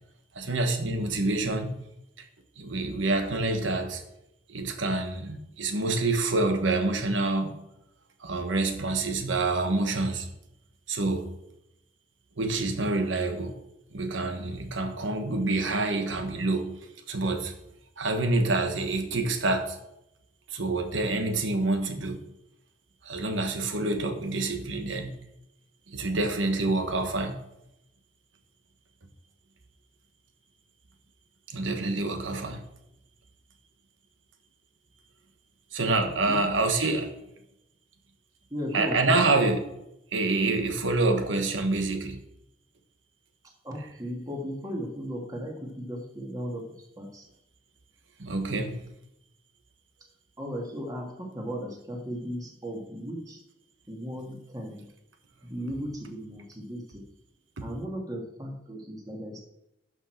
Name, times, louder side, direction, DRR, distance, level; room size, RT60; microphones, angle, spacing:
voice 1, 0.3-1.8 2.2-2.3 2.6-4.0 4.5-7.6 8.2-10.3 10.9-11.3 12.4-13.6 13.9-16.8 17.1-17.5 18.0-19.8 20.5-22.2 23.0-25.2 25.9-27.4 31.5-32.7 35.7-37.1 38.7-39.6 40.1-42.2 48.2-48.8 57.6-57.7, right 2 dB, 85° right, 1.3 m, -27 dB
voice 2, 36.0-36.4 38.5-39.3 43.6-47.3 50.4-53.4 53.9-54.9 55.4-57.0 57.6-59.4, equal, 20° right, 1.8 m, -36 dB
11.0 x 6.3 x 4.5 m
head